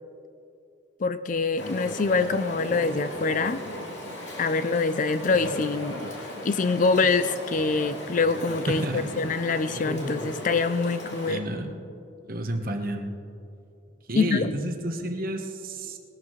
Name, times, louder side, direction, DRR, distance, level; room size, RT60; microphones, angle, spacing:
voice 1, 1.0-3.6 4.4-6.0 6.4-11.4 14.2-14.5, left 4 dB, 40° left, 12 dB, 0.4 m, -25 dB
Chatter / Stream, 1.6-11.3, left 1 dB, 60° left, 2.9 m, -37 dB
voice 2, 8.7-9.1 11.3-11.7 12.2-13.1 14.1-16.0, right 1 dB, 45° right, 4 dB, 1.1 m, -30 dB
20.0 x 13.0 x 3.2 m, 2.7 s
head